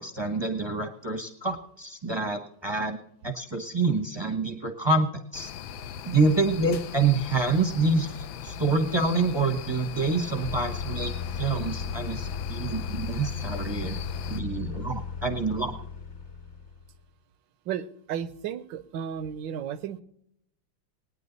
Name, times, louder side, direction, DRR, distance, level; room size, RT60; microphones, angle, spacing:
voice 1, 0.0-3.0 3.2-5.5 6.0-14.0 14.3-15.8, right 3 dB, 20° right, 6 dB, 0.7 m, -27 dB
sound 1, 5.3-14.4, left 8 dB, 80° left, 1.4 m, -39 dB
sound 2, 10.4-17.0, left 6 dB, 40° left, 1.2 m, -35 dB
voice 2, 17.7-20.0, right 9 dB, 75° right, 13 dB, 1.3 m, -34 dB
19.5 x 9.6 x 4.0 m, 0.71 s
omnidirectional pair, 2.1 m